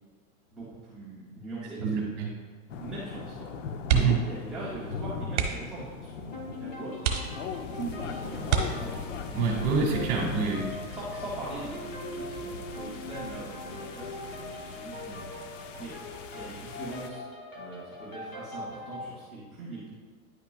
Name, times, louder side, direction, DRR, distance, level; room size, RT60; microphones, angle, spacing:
voice 1, 0.5-2.0 2.8-3.6 4.2-7.0 7.7-9.0 10.9-15.3 15.8-15.9 16.3-17.2 17.5-20.0, right 2 dB, ahead, -12 dB, 0.5 m, -41 dB
voice 2, 1.6-2.3 3.9-4.3 9.3-10.7, right 5 dB, 35° right, -1 dB, 1.9 m, -27 dB
sound 1, 2.7-17.1, left 6 dB, 65° left, 0.7 m, -40 dB
sound 2, 3.8-4.4 4.6-4.8 5.3-5.8 6.4-6.5 7.0-7.7 8.4-9.2 10.8-11.1 11.5-11.6, right 7 dB, 55° right, 1.1 m, -28 dB
sound 3, 6.3-19.1, left 1 dB, 25° left, 0.9 m, -42 dB
9.9 x 5.7 x 2.3 m, 1.5 s
supercardioid pair, 170°, 41 cm